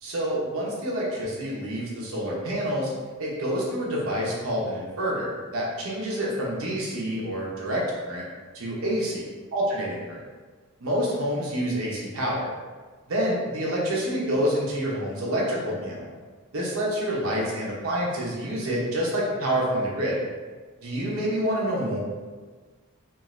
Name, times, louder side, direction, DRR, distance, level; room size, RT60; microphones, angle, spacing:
voice 1, 0.0-2.9 3.2-8.2 8.5-9.2 9.5-10.2 10.8-12.5 13.1-16.1 16.5-20.1 20.8-22.0, equal, 80° right, -5 dB, 0.7 m, -27 dB
3.0 x 2.5 x 2.5 m, 1.4 s
head